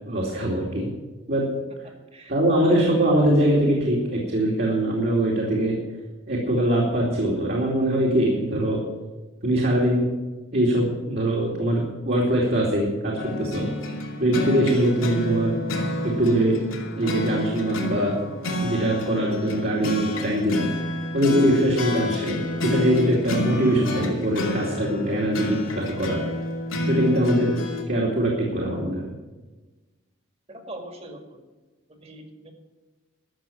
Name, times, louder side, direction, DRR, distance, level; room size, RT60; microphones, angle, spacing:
voice 1, 0.1-0.9 1.3-1.5 2.3-5.8 6.3-8.8 9.4-10.1 10.5-13.7 14.2-15.5 16.0-16.6 16.9-18.1 18.6-20.7 21.1-26.2 26.9-27.6 27.9-29.1, right 1 dB, 50° right, -3 dB, 2.6 m, -22 dB
sound 1, 13.2-27.8, left 2 dB, 90° left, 2.6 m, -29 dB
voice 2, 30.5-31.4 31.9-32.5, right 1 dB, 30° right, 4 dB, 2.1 m, -39 dB
13.0 x 7.2 x 8.8 m, 1.2 s
head